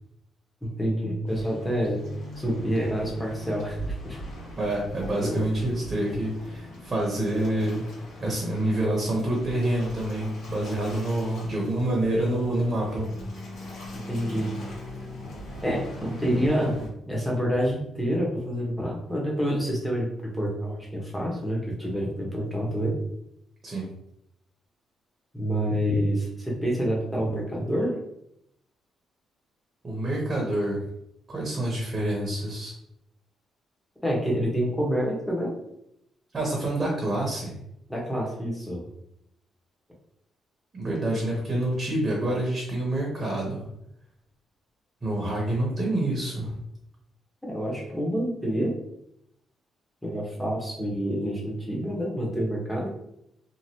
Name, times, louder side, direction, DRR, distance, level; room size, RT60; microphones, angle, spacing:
voice 1, 0.6-2.0 2.4-4.2 5.2-5.4 13.9-14.5 15.6-16.8 17.1-23.0 25.3-28.0 34.0-35.5 37.9-38.8 47.4-48.8 50.0-52.9, equal, 5° left, -3 dB, 1.0 m, -27 dB
Waves surf, 1.3-16.9, equal, 70° left, 1.3 m, -41 dB
voice 2, 4.6-7.8 8.2-13.1 23.6-23.9 29.8-30.9 31.3-32.7 36.3-37.6 40.7-43.7 45.0-46.6, right 1 dB, 35° right, -2 dB, 0.9 m, -27 dB
2.9 x 2.5 x 2.8 m, 0.79 s
cardioid pair, 90°, 0 cm